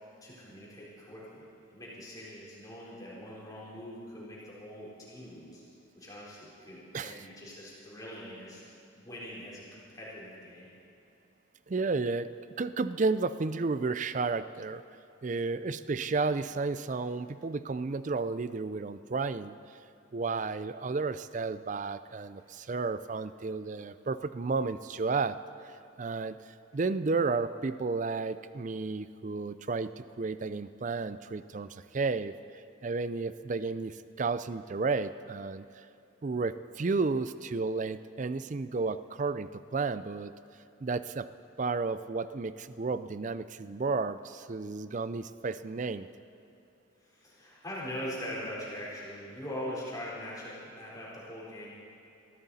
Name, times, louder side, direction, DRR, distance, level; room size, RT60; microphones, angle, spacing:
voice 1, 0.2-5.6 5.9-8.6 9.0-10.7 47.0-51.7, equal, 20° left, -7 dB, 4.1 m, -42 dB
voice 2, 11.7-12.3 12.6-14.8 15.2-19.6 20.1-25.4 25.6-32.3 32.8-35.9 36.2-40.3 40.8-41.3 41.6-46.1, right 4 dB, 40° right, 14 dB, 0.4 m, -32 dB
22.5 x 14.5 x 4.2 m, 2.8 s
head